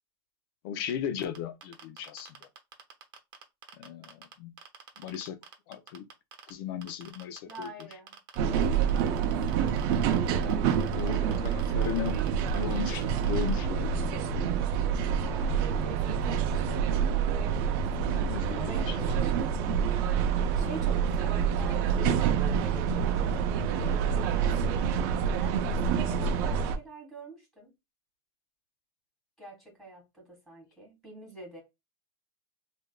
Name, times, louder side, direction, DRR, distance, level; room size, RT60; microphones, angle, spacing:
voice 1, 0.6-2.4 3.7-4.5 5.0-5.4 5.7-6.1 6.5-7.7 10.9-12.2 12.5-14.3 17.9-19.0 26.5-26.6, left 8 dB, 60° left, 0.5 m, -36 dB
sound 1, 1.2-4.3 4.6-6.5 6.8-13.5, right 8 dB, 30° right, 0.8 m, -47 dB
voice 2, 7.5-8.2 8.5-10.0 10.3-11.9 15.2-19.9 20.3-24.9 25.4-27.7 29.4-31.6, right 1 dB, ahead, 1.8 m, -46 dB
sound 2, 8.4-26.8, right 7 dB, 50° right, 0.4 m, -27 dB
3.3 x 2.5 x 2.3 m
supercardioid pair, 140°, 14 cm